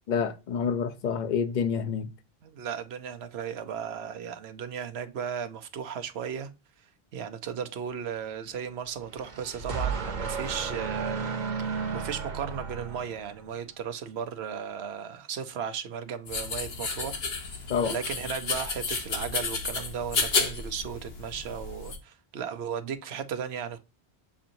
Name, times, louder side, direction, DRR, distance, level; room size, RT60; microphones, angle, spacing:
voice 1, 0.1-2.1 17.7-18.0, left 6 dB, 55° left, 0.7 m, -28 dB
voice 2, 2.4-6.5 7.1-11.3 11.6-23.8, right 7 dB, 85° right, 0.9 m, -36 dB
sound 1, 9.0-13.6, right 5 dB, 50° right, 0.9 m, -33 dB
sound 2, 16.3-22.0, left 4 dB, 70° left, 1.2 m, -31 dB
7.0 x 2.6 x 2.8 m
omnidirectional pair, 1.0 m